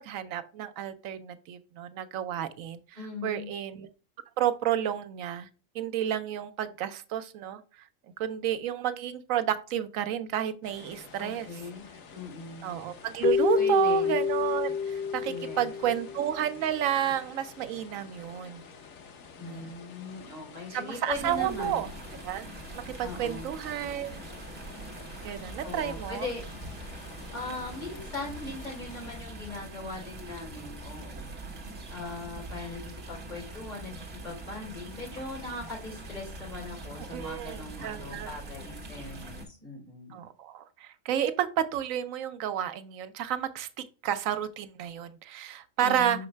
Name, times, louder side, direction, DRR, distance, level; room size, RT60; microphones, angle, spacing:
voice 1, 0.0-2.8 3.2-3.9 4.4-5.5 5.7-7.6 8.2-11.5 12.6-18.6 19.4-19.7 20.7-21.9 22.2-22.5 22.7-24.2 25.2-26.3 37.1-38.3 40.1-46.3, right 10 dB, 90° right, 1.0 m, -31 dB
voice 2, 2.9-3.5 11.2-12.7 13.5-14.2 15.2-15.7 19.4-21.9 23.0-23.5 25.6-26.4 27.3-31.4 31.9-33.9 34.2-40.2 45.8-46.3, left 3 dB, 35° left, 3.9 m, -40 dB
sound 1, 10.6-29.2, left 5 dB, 85° left, 1.3 m, -50 dB
Keyboard (musical), 13.2-16.5, left 7 dB, 60° left, 0.5 m, -28 dB
sound 2, 21.1-39.4, right 2 dB, 50° right, 1.5 m, -43 dB
6.2 x 4.8 x 3.2 m
omnidirectional pair, 1.3 m